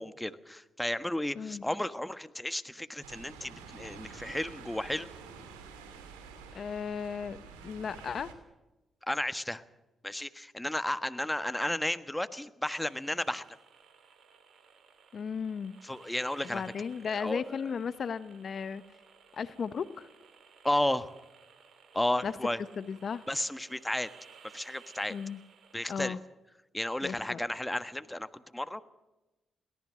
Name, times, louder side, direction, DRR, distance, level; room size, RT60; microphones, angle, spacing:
voice 1, 0.0-5.1 9.1-9.6 10.0-13.5 15.8-16.6 17.2-17.6 20.6-21.1 21.9-22.6 23.3-24.1 24.5-25.2 25.7-26.2 26.7-28.8, left 1 dB, 10° left, 12 dB, 1.4 m, -33 dB
sound 1, 3.0-8.3, right 5 dB, 90° right, 2.8 m, -48 dB
voice 2, 6.5-8.3 15.1-15.7 16.4-18.8 19.3-20.1 22.2-22.3 22.8-23.2 25.1-25.4 25.9-26.2 27.0-27.4, left 6 dB, 60° left, 15 dB, 0.9 m, -35 dB
sound 2, 12.6-26.0, right 6 dB, 60° right, 3.1 m, -58 dB
23.0 x 18.0 x 6.4 m, 1.0 s
hypercardioid pair, 45°, 0 cm